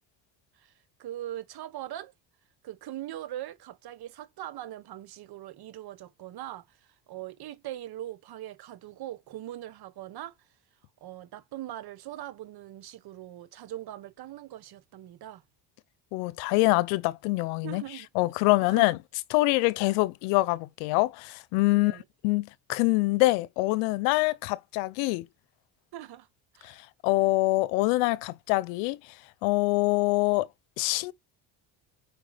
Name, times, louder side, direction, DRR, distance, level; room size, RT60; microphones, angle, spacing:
voice 1, 1.0-2.1 2.6-10.4 11.0-15.4 17.6-18.1 18.6-18.9 21.7-22.0 25.9-26.3 26.5-26.8, right 13 dB, 55° right, 1.1 m, -41 dB
voice 2, 16.1-17.8 18.1-19.0 19.3-22.0 22.2-25.3 26.6-29.0 29.4-30.5 30.8-31.1, left 21 dB, 85° left, 0.8 m, -25 dB
4.9 x 4.8 x 5.0 m
supercardioid pair, 90°, 44 cm